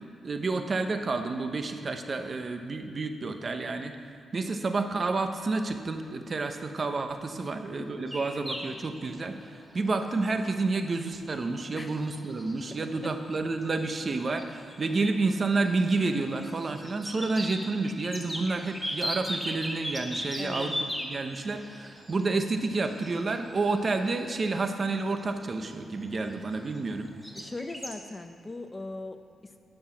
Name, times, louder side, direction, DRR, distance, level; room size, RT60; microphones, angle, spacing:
voice 1, 0.2-3.9 4.3-20.7 21.1-27.1, right 3 dB, 40° right, 7 dB, 0.8 m, -30 dB
voice 2, 7.8-8.3 11.7-12.0 12.8-13.1 20.4-20.8 27.3-29.6, left 2 dB, 20° left, 7 dB, 0.7 m, -40 dB
sound 1, 8.1-27.0 27.2-27.9, equal, ahead, 1.2 m, -39 dB
11.5 x 6.4 x 6.0 m, 2.4 s
cardioid pair, 95°, 0 cm